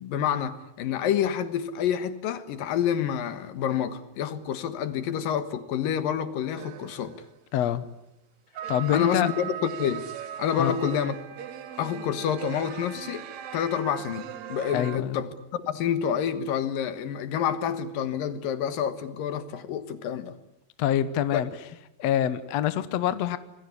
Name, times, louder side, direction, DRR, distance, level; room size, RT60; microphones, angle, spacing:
voice 1, 0.0-7.2 8.9-10.1 10.4-11.1 11.8-13.2 13.5-20.4 21.3-21.4, left 8 dB, 80° left, 3.1 m, -28 dB
sound 1, 6.6-7.3 8.6-15.0, right 9 dB, 60° right, 2.3 m, -38 dB
voice 2, 7.5-7.8 8.7-9.3 10.6-10.7 14.7-15.2 20.8-21.5 22.0-23.4, left 11 dB, 60° left, 2.0 m, -25 dB
27.0 x 20.5 x 9.9 m
omnidirectional pair, 4.0 m